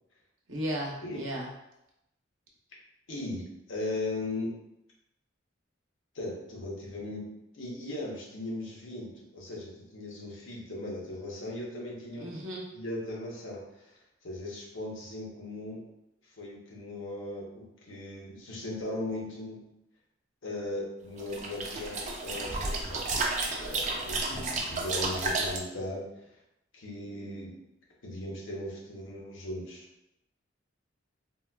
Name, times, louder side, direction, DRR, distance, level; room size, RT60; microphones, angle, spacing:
voice 1, 0.5-1.5 12.2-12.7 24.2-24.6, equal, 80° right, -2 dB, 0.8 m, -36 dB
voice 2, 3.1-4.5 6.1-7.3 7.5-12.3 12.7-14.0 14.2-15.8 16.4-19.6 20.4-23.1 23.6-26.0 26.7-27.5 28.0-29.9, left 2 dB, 80° left, -3 dB, 0.9 m, -38 dB
sound 1, 21.2-25.6, right 3 dB, 35° right, 0.4 m, -32 dB
4.0 x 2.3 x 2.2 m, 0.86 s
head